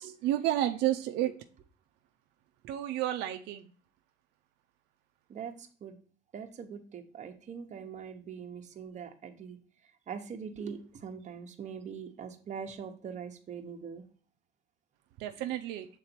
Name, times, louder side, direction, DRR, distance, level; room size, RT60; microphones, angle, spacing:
voice 1, 0.0-1.3 2.6-3.7 10.6-10.7 15.2-15.9, right 13 dB, 90° right, 6 dB, 0.5 m, -31 dB
voice 2, 5.3-6.0 6.3-9.6 10.1-14.1, right 6 dB, 45° right, 5 dB, 1.0 m, -42 dB
6.6 x 3.9 x 4.3 m, 0.43 s
cardioid pair, 110°, 17 cm